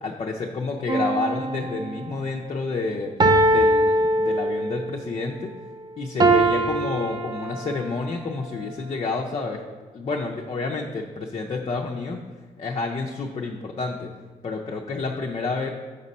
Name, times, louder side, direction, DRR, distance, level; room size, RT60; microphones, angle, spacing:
voice 1, 0.0-3.1 3.4-5.5 6.0-9.6 9.9-12.2 12.6-14.1 14.4-15.7, left 3 dB, 45° left, 0 dB, 0.6 m, -29 dB
sound 1, 0.9-2.2 3.2-4.9 6.2-7.9 8.6-8.7, right 2 dB, 30° right, 0.5 m, -22 dB
6.7 x 4.1 x 5.3 m, 1.4 s
wide cardioid pair, 120°, 14 cm